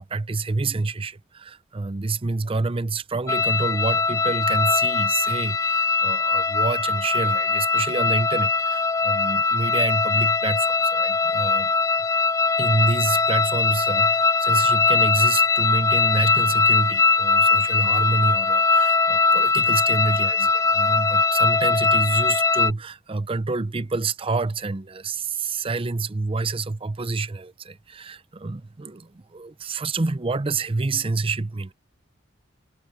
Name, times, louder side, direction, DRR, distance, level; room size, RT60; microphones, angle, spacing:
voice 1, 0.0-11.7 12.6-31.7, right 3 dB, 30° right, 0.6 m, -28 dB
sound 1, 3.3-22.7, left 4 dB, 15° left, 0.3 m, -21 dB
head